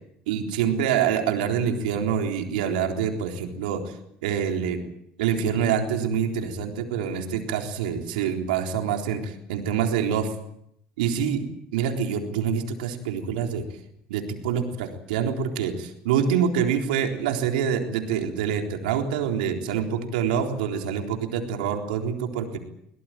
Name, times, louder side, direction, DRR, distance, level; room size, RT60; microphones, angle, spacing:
voice 1, 0.3-3.9 4.2-4.8 5.2-10.3 11.0-11.4 11.7-13.6 14.1-22.6, right 7 dB, 90° right, 3 dB, 3.9 m, -26 dB
23.0 x 18.5 x 9.2 m, 0.75 s
supercardioid pair, 80°, 5 cm